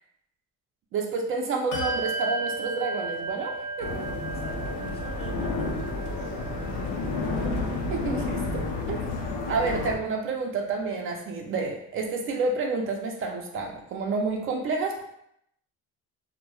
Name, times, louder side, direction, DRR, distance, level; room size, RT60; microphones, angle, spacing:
voice 1, 0.9-4.1 7.7-8.6 8.9-9.0 9.5-15.0, right 3 dB, 45° right, 2 dB, 0.4 m, -29 dB
Bell, 1.7-11.7, right 2 dB, 70° left, 0.9 m, -37 dB
sound 1, 3.8-9.9, left 3 dB, 85° left, 0.6 m, -31 dB
voice 2, 4.3-7.1, left 2 dB, 20° left, -2 dB, 0.4 m, -45 dB
2.2 x 2.1 x 2.9 m, 0.74 s
cardioid pair, 125°, 31 cm